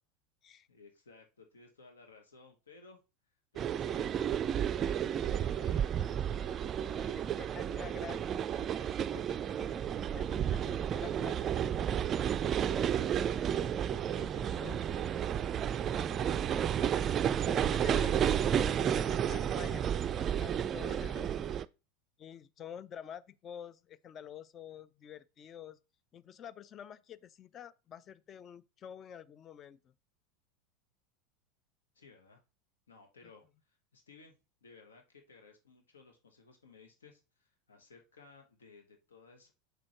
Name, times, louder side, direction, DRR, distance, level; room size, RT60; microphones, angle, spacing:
voice 1, 0.7-3.0 3.5-4.3 4.6-7.7 12.3-16.6 31.9-32.4 32.9-34.4 34.6-39.5, left 4 dB, 75° left, 1.3 m, -57 dB
sound 1, 3.6-21.7, right 9 dB, 30° right, 0.4 m, -32 dB
voice 2, 6.8-9.3 9.6-11.5 14.6-14.8 17.5-21.5 22.2-25.8 26.1-29.9, left 8 dB, 35° left, 0.5 m, -49 dB
6.7 x 6.2 x 3.0 m
figure-of-eight pair, 80°, 0 cm